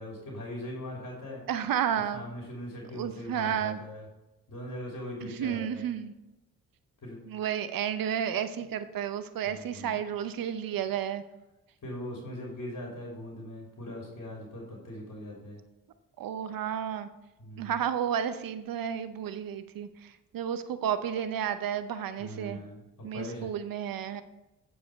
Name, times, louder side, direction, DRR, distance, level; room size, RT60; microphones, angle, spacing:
voice 1, 0.0-1.4 2.1-4.0 4.5-5.8 7.0-7.2 9.4-10.0 11.8-15.6 17.4-17.8 22.2-23.5, equal, 50° left, -2 dB, 3.2 m, -40 dB
voice 2, 1.5-2.2 2.9-3.8 5.3-6.1 7.3-11.2 16.2-17.1 17.6-22.6 23.0-24.2, right 9 dB, 65° right, 11 dB, 0.8 m, -32 dB
9.0 x 5.0 x 5.2 m, 0.98 s
hypercardioid pair, 45°, 37 cm